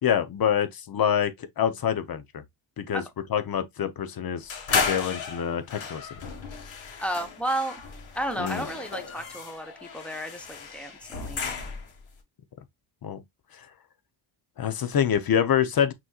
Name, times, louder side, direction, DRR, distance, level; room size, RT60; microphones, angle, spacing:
voice 1, 0.0-2.4 2.8-3.0 3.3-6.0 8.4-8.6 13.0-13.2 14.6-15.9, left 9 dB, 45° left, 0.7 m, -26 dB
sound 1, 4.5-12.0, left 5 dB, 60° left, 1.7 m, -34 dB
voice 2, 7.0-7.8 8.1-11.5, right 1 dB, ahead, 0.8 m, -32 dB
6.0 x 3.0 x 2.3 m
cardioid pair, 125°, 50 cm